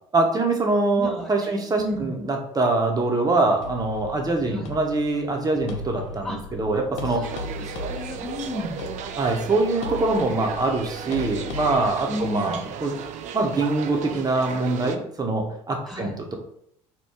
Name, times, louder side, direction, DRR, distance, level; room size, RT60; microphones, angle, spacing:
voice 1, 0.1-7.2 9.2-12.9 13.3-16.4, right 2 dB, 25° right, 2 dB, 0.8 m, -24 dB
voice 2, 1.0-2.2 4.4-4.7 6.2-6.6 7.0-8.8 12.1-12.6 15.9-16.1, equal, ahead, 0 dB, 1.0 m, -33 dB
sound 1, 3.6-11.9, left 4 dB, 80° left, 0.5 m, -38 dB
sound 2, 7.2-15.0, right 8 dB, 50° right, 0.4 m, -35 dB
2.9 x 2.2 x 3.5 m, 0.72 s
hypercardioid pair, 60°, 16 cm